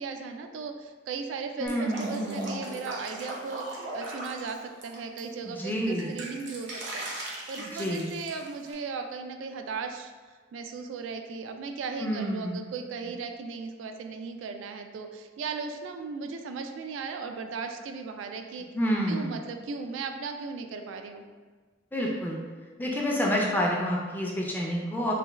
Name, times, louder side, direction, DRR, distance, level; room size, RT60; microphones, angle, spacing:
voice 1, 0.0-10.1 10.5-18.7 19.1-21.2, right 4 dB, 90° right, 5 dB, 0.3 m, -37 dB
voice 2, 1.6-2.6 5.4-6.2 7.6-8.1 12.0-12.6 18.7-19.3 21.9-22.4 22.8-25.1, equal, 10° left, -2 dB, 0.4 m, -29 dB
Drip, 1.7-5.2 5.6-8.7, right 1 dB, 70° right, 0.7 m, -39 dB
3.3 x 2.2 x 3.2 m, 1.4 s
head